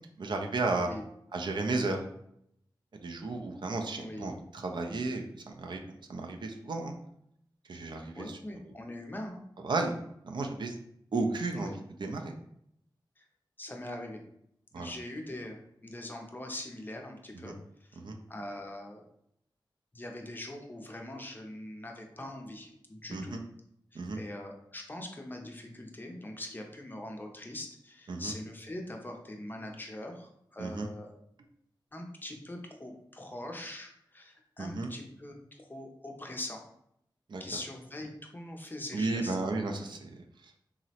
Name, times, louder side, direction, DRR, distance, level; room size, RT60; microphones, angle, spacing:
voice 1, 0.2-0.9 1.3-2.0 3.0-5.8 6.1-6.9 7.7-8.4 9.6-10.0 10.2-10.8 11.1-11.7 12.0-12.3 14.7-14.9 17.4-17.5 18.0-18.2 23.1-23.4 23.9-24.2 28.1-28.3 30.6-30.9 34.6-34.9 37.3-37.4 38.9-40.2, right 3 dB, 70° right, 3 dB, 0.4 m, -33 dB
voice 2, 4.0-4.4 8.2-9.4 11.5-11.7 13.2-13.3 13.6-14.2 14.7-17.5 17.8-18.0 18.3-19.0 19.9-23.4 23.9-31.1 31.9-36.6 37.4-39.4, left 1 dB, 25° left, 2 dB, 0.5 m, -42 dB
3.7 x 2.0 x 2.8 m, 0.74 s
wide cardioid pair, 95°, 8 cm